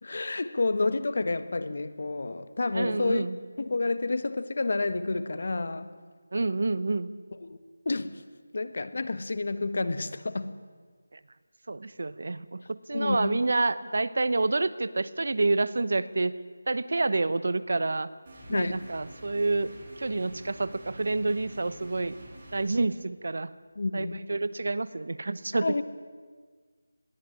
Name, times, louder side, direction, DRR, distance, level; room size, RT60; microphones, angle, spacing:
voice 1, 0.0-3.2 3.6-5.9 7.4-7.6 7.8-8.2 8.5-10.6 12.9-13.4 18.5-18.9 23.7-24.3 25.6-25.8, left 3 dB, 55° left, 1.5 m, -29 dB
voice 2, 2.7-3.4 6.3-7.1 11.7-16.3 16.7-18.1 18.5-19.7 20.0-22.1 22.5-23.5 23.9-25.8, right 3 dB, 60° right, 1.0 m, -28 dB
sound 1, 18.3-22.7, right 1 dB, 30° right, 7.3 m, -48 dB
21.5 x 15.5 x 9.9 m
figure-of-eight pair, 170°, 0 cm